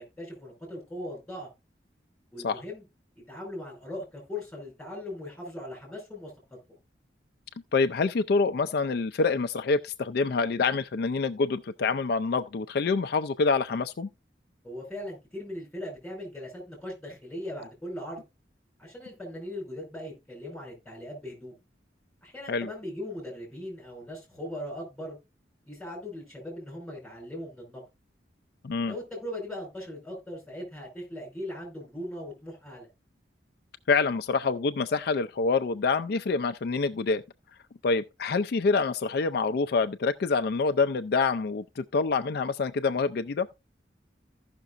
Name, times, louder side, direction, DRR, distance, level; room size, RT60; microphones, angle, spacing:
voice 1, 0.0-1.5 2.3-2.8 3.3-6.3 14.6-18.2 18.8-21.5 22.2-25.2 25.6-27.8 28.9-32.9, left 1 dB, 5° left, 5.0 m, -39 dB
voice 2, 7.7-14.1 22.5-22.7 28.6-28.9 33.9-37.2 37.8-43.5, left 4 dB, 55° left, 0.4 m, -26 dB
15.5 x 5.9 x 2.5 m
head